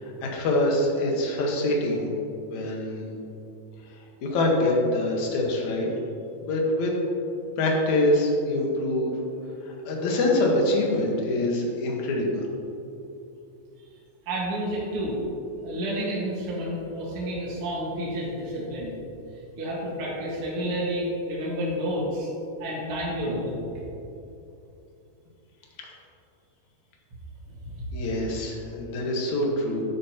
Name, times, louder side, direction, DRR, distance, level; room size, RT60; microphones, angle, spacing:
voice 1, 0.0-2.1 2.5-3.1 4.2-5.9 6.4-6.9 7.6-9.1 9.6-12.5 27.9-29.8, left 1 dB, 60° left, -1 dB, 2.0 m, -25 dB
voice 2, 14.2-15.2 15.6-19.0 19.6-22.3 22.6-23.6 27.6-27.8, equal, 55° right, -5 dB, 1.4 m, -30 dB
13.0 x 9.3 x 2.9 m, 2.8 s
omnidirectional pair, 5.1 m